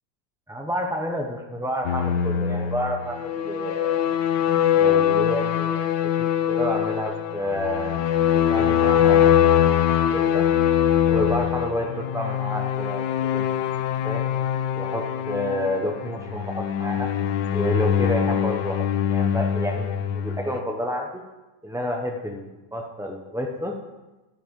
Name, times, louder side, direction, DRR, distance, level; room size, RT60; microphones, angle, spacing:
voice 1, 0.5-4.0 4.7-5.9 6.2-8.0 8.5-9.6 10.1-10.5 11.1-13.0 13.3-13.5 14.0-14.3 14.7-17.1 17.5-21.2 21.6-23.8, equal, 5° right, 1 dB, 0.4 m, -29 dB
sound 1, 1.8-20.6, left 10 dB, 80° left, 1.4 m, -23 dB
12.0 x 9.4 x 5.3 m, 1.1 s
omnidirectional pair, 1.9 m